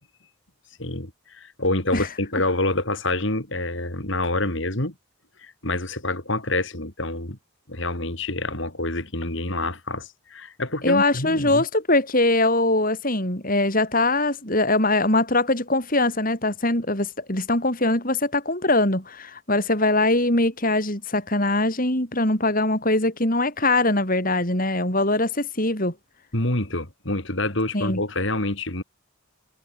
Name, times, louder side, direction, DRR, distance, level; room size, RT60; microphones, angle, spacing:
voice 1, 0.8-4.9 5.4-7.4 7.7-11.6 26.3-28.8, left 2 dB, 55° left, 4.1 m, -27 dB
voice 2, 10.8-25.9 27.7-28.0, left 2 dB, 40° left, 6.1 m, -22 dB
head